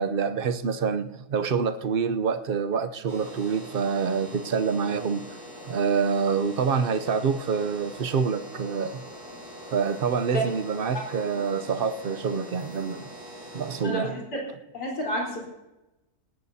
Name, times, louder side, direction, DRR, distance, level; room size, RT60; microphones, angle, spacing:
voice 1, 0.0-5.4 5.7-9.0 9.7-13.1 13.5-14.2, right 6 dB, 50° right, 0.6 m, -26 dB
sound 1, 3.1-13.8, equal, 70° right, 7.7 m, -43 dB
voice 2, 13.8-14.4 14.7-15.4, right 1 dB, 90° left, 4.7 m, -29 dB
19.5 x 17.5 x 2.8 m
omnidirectional pair, 1.7 m